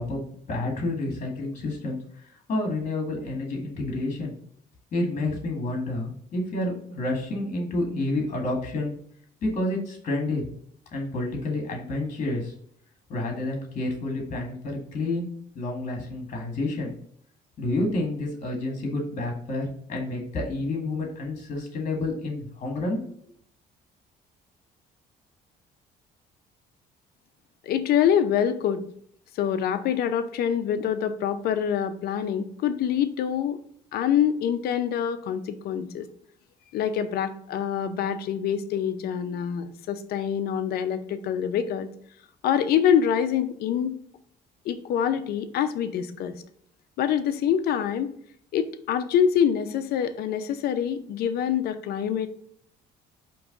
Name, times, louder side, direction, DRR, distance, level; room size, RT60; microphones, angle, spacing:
voice 1, 0.0-2.0 2.5-4.3 4.9-8.9 9.4-10.4 10.9-12.5 13.1-15.3 15.6-16.9 17.6-23.0, left 2 dB, 45° left, 1 dB, 1.7 m, -29 dB
voice 2, 27.6-28.8 29.3-33.6 33.9-36.1 36.7-41.9 42.4-44.0 44.6-46.3 47.0-48.1 48.5-52.3, left 8 dB, 70° left, 10 dB, 0.6 m, -25 dB
4.6 x 3.0 x 3.8 m, 0.63 s
cardioid pair, 110°, 17 cm